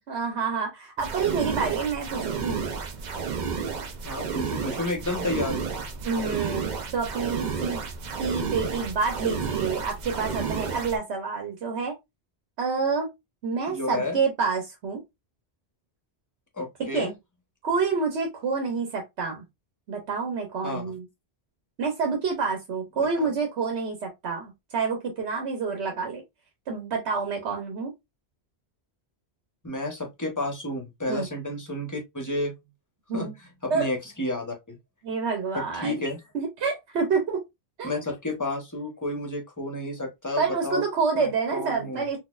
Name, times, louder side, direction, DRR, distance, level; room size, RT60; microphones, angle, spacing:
voice 1, 0.1-2.6 6.0-7.8 8.2-11.9 12.6-13.1 13.4-15.0 16.9-17.1 17.6-19.4 19.9-21.0 21.8-26.2 26.7-27.9 31.1-31.3 33.1-33.3 33.7-33.9 35.0-36.0 36.3-37.4 37.8-37.9 40.4-42.2, right 5 dB, 80° right, 1.1 m, -28 dB
sound 1, 1.0-11.0, right 6 dB, 55° right, 0.5 m, -31 dB
voice 2, 4.0-5.7 13.7-14.2 16.6-17.1 20.6-20.9 23.2-23.3 29.6-32.5 33.1-33.3 33.6-34.8 35.5-36.2 37.8-40.8 41.2-42.1, left 2 dB, 20° left, 0.9 m, -31 dB
4.1 x 2.5 x 2.4 m
omnidirectional pair, 1.1 m